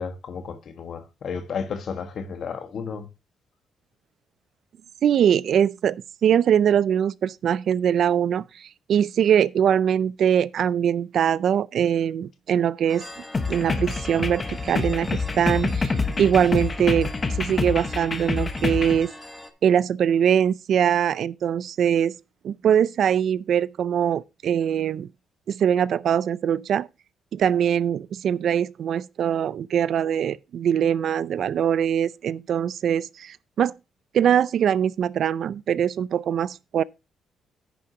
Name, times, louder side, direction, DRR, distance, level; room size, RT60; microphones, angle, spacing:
voice 1, 0.0-3.1, left 6 dB, 50° left, 1.5 m, -32 dB
voice 2, 5.0-13.0 13.5-19.1 19.6-22.1 22.4-25.1 25.5-26.9 27.3-33.7 34.1-36.8, right 9 dB, 55° right, 0.4 m, -22 dB
sound 1, 12.9-19.5, left 1 dB, 5° left, 1.2 m, -41 dB
sound 2, 13.3-19.0, left 4 dB, 25° left, 1.1 m, -27 dB
10.5 x 9.7 x 2.8 m
cardioid pair, 155°, 0 cm